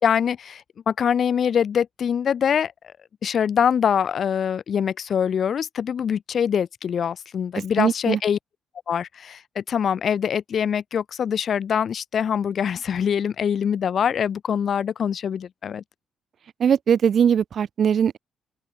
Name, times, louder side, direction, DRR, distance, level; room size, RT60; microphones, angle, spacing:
voice 1, 0.0-2.7 3.2-8.4 8.9-15.8, left 8 dB, 55° left, 3.3 m, -24 dB
voice 2, 7.8-8.2 16.6-18.2, right 8 dB, 55° right, 1.9 m, -20 dB
open air
cardioid pair, 90°, 0 cm